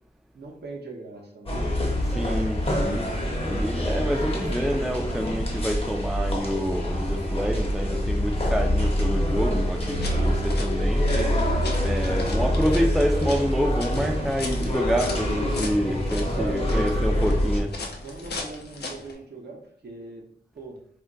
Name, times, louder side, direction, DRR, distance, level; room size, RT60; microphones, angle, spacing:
voice 1, 0.3-2.1 11.3-13.0 16.1-20.2 20.5-20.8, right 3 dB, 80° right, -1 dB, 0.6 m, -40 dB
sound 1, 1.5-17.6, equal, 35° left, 0.7 m, -25 dB
voice 2, 2.2-11.2 11.8-17.7, equal, ahead, 3 dB, 0.3 m, -27 dB
sound 2, 9.8-19.1, left 3 dB, 85° left, 0.5 m, -38 dB
2.2 x 2.2 x 3.7 m, 0.67 s
wide cardioid pair, 70°, 17 cm